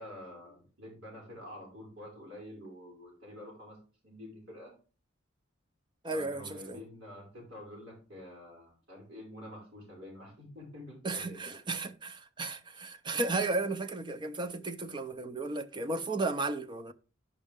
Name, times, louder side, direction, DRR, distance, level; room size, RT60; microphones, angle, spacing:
voice 1, 0.0-3.8 4.0-4.7 6.1-11.6, left 1 dB, 70° right, 5.4 m, -48 dB
voice 2, 6.0-6.8 11.0-16.9, right 3 dB, 25° right, 0.5 m, -34 dB
10.5 x 5.4 x 3.6 m
head